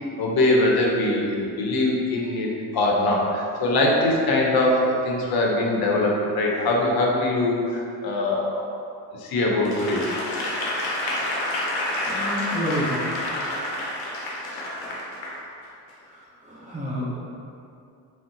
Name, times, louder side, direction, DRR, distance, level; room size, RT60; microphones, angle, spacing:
voice 1, 0.2-8.6 9.1-10.1 13.1-13.4 14.5-14.6, left 2 dB, 55° left, -1 dB, 0.7 m, -22 dB
Applause / Crowd, 9.6-15.4 15.9-16.0, left 1 dB, 90° left, 0.7 m, -28 dB
voice 2, 12.1-13.0 16.5-17.2, equal, 15° right, -7 dB, 0.9 m, -29 dB
3.7 x 2.1 x 2.5 m, 2.5 s
supercardioid pair, 75°, 43 cm